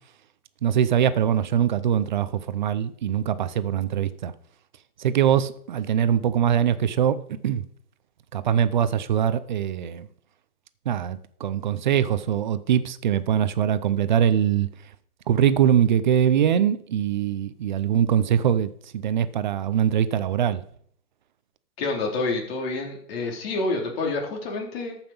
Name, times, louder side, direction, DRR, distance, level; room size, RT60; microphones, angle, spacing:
voice 1, 0.6-4.3 5.0-7.2 7.4-7.6 8.3-10.1 10.9-14.7 15.3-20.6, right 9 dB, 30° right, 0.6 m, -22 dB
voice 2, 21.8-25.0, left 3 dB, 40° left, 3.8 m, -28 dB
14.0 x 5.9 x 5.5 m
hypercardioid pair, 140°, 47 cm